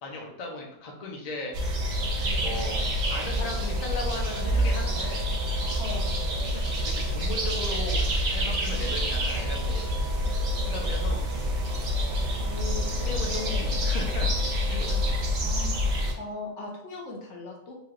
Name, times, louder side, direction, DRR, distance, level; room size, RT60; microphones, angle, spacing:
voice 1, 0.0-2.0 2.4-5.4 6.5-8.0 8.3-11.3 12.0-12.2 13.0-15.0, left 2 dB, 45° left, 0 dB, 0.6 m, -37 dB
sound 1, 1.5-16.1, equal, 50° right, 0.7 m, -27 dB
voice 2, 2.2-2.6 5.8-6.2 8.7-8.9 12.4-12.9 13.2-13.8 15.4-17.8, left 3 dB, 80° left, -1 dB, 1.1 m, -39 dB
3.3 x 2.8 x 2.4 m, 0.84 s
omnidirectional pair, 1.2 m